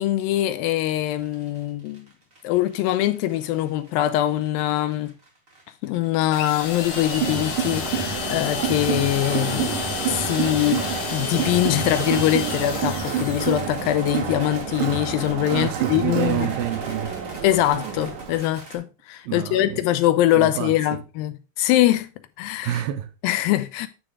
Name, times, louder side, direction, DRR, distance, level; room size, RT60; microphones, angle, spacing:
voice 1, 0.0-2.1 2.4-5.1 5.8-10.8 11.1-16.5 17.4-22.1 22.4-22.7 23.2-23.9, left 14 dB, 85° left, 2.4 m, -23 dB
sound 1, 0.7-18.8, right 2 dB, 25° right, 1.3 m, -46 dB
sound 2, 6.3-13.9, left 6 dB, 60° left, 1.8 m, -31 dB
Crowd, 6.9-18.5, right 7 dB, 70° right, 3.1 m, -28 dB
voice 2, 15.4-17.2 19.3-19.8 20.3-21.0 22.6-23.1, right 12 dB, 85° right, 2.5 m, -28 dB
10.0 x 3.5 x 4.7 m
omnidirectional pair, 4.1 m